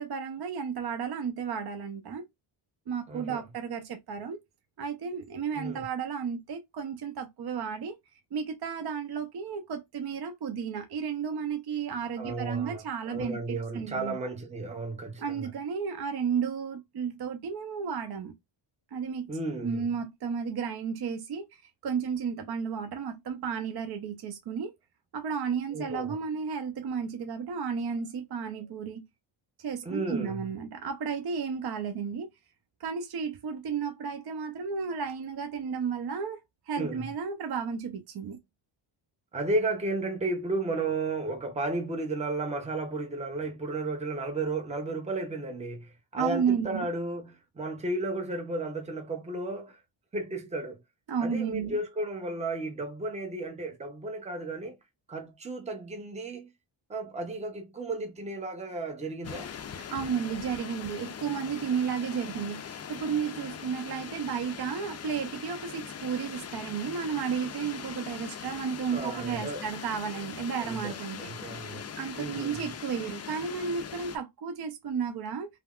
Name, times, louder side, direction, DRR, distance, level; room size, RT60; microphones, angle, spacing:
voice 1, 0.0-2.3 2.9-4.4 4.8-8.0 8.3-14.2 15.2-18.3 18.9-19.3 19.6-24.7 25.1-29.0 29.6-32.3 32.8-36.4 36.7-38.4 46.2-46.8 51.1-51.8 59.8-71.3 72.0-75.5, right 6 dB, 50° right, 0.7 m, -33 dB
voice 2, 3.1-3.4 5.6-5.8 12.2-15.5 19.3-19.8 25.7-26.2 29.8-30.5 36.8-37.1 39.3-49.8 50.1-50.8 51.2-54.8 55.1-56.5 56.9-59.5 68.9-69.7 70.6-71.8 72.2-72.6, right 2 dB, 15° right, 0.7 m, -33 dB
sound 1, 59.2-74.2, left 7 dB, 35° left, 0.4 m, -41 dB
3.3 x 2.0 x 2.3 m
cardioid pair, 80°, 49 cm